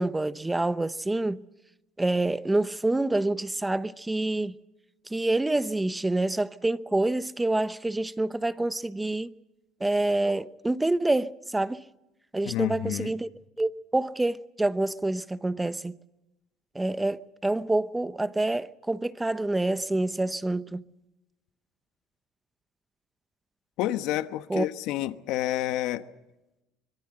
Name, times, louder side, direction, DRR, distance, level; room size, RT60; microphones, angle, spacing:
voice 1, 0.0-1.4 2.0-4.6 5.1-9.3 9.8-11.8 12.3-13.3 13.6-16.0 16.7-20.8 24.5-24.7, right 2 dB, 10° right, 0.8 m, -27 dB
voice 2, 12.4-13.1 23.8-26.0, left 14 dB, 75° left, 1.2 m, -29 dB
25.0 x 22.5 x 7.8 m
cardioid pair, 110°, 0 cm